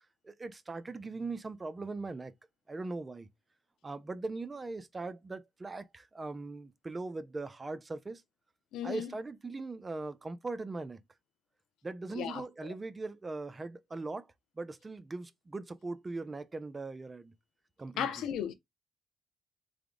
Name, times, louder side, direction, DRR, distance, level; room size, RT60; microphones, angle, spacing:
voice 1, 0.2-2.3 2.7-3.3 3.8-8.2 8.8-11.0 11.8-14.3 14.6-17.3 17.8-18.2, right 3 dB, 25° right, 0.5 m, -40 dB
voice 2, 8.7-9.1 12.2-12.7 18.0-18.5, left 9 dB, 85° left, 0.5 m, -35 dB
3.4 x 2.2 x 3.7 m
cardioid pair, 90°, 0 cm